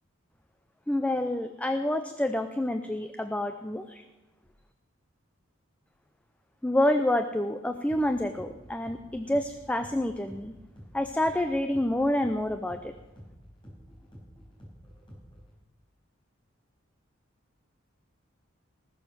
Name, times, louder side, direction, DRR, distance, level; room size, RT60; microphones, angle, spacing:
voice 1, 0.9-4.0 6.6-10.5 10.9-12.9, left 1 dB, 5° left, 8 dB, 0.5 m, -28 dB
sound 1, 7.9-15.5, equal, 25° left, 4.8 m, -50 dB
19.5 x 7.1 x 6.1 m, 1.2 s
head